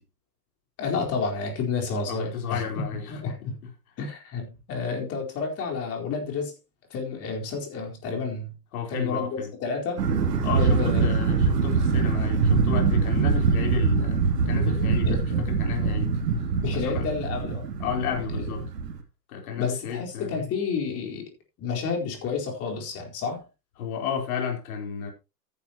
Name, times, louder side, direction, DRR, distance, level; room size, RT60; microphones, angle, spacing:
voice 1, 0.8-3.6 4.0-6.5 6.9-8.5 8.9-10.1 10.6-11.2 15.1-15.4 15.7-15.9 16.6-17.7 18.3-18.6 19.6-21.3 21.6-23.4, left 5 dB, 30° left, 4.3 m, -30 dB
voice 2, 2.1-3.2 3.6-3.7 8.7-9.5 10.4-16.1 16.7-17.1 17.8-18.6 19.3-20.5 23.8-25.1, left 7 dB, 60° left, 4.2 m, -32 dB
sound 1, 10.0-19.0, right 5 dB, 75° right, 3.0 m, -24 dB
13.5 x 11.0 x 3.0 m
hypercardioid pair, 120°, 49 cm